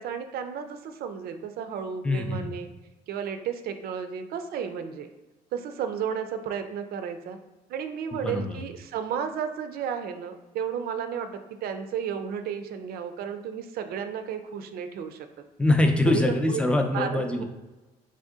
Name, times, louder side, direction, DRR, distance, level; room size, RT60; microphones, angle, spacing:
voice 1, 0.0-2.7 3.1-5.1 5.5-7.4 7.7-15.3 16.1-16.6 16.9-17.4, right 7 dB, 65° right, 8 dB, 0.4 m, -33 dB
voice 2, 2.0-2.5 8.1-8.6 15.6-17.4, left 2 dB, 5° left, 4 dB, 0.5 m, -24 dB
3.6 x 2.7 x 3.6 m, 1.1 s
cardioid pair, 110°, 17 cm